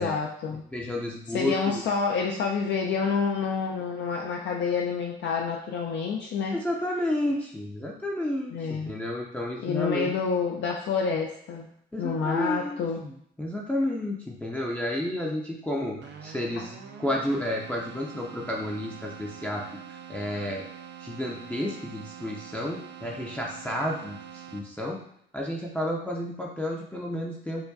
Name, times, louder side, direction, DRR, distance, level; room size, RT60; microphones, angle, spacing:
voice 1, 0.0-0.6 1.3-6.6 8.5-8.9 9.6-11.7 12.0-13.0, left 5 dB, 65° left, 0 dB, 0.4 m, -28 dB
voice 2, 0.5-1.8 6.5-10.1 11.9-16.7 17.0-19.6 19.9-20.6 21.0-25.0 25.3-27.7, left 1 dB, 5° left, -2 dB, 0.5 m, -31 dB
Keyboard (musical), 16.0-25.0, right 8 dB, 60° right, 0.5 m, -45 dB
4.7 x 2.2 x 2.6 m, 0.68 s
cardioid pair, 90°, 20 cm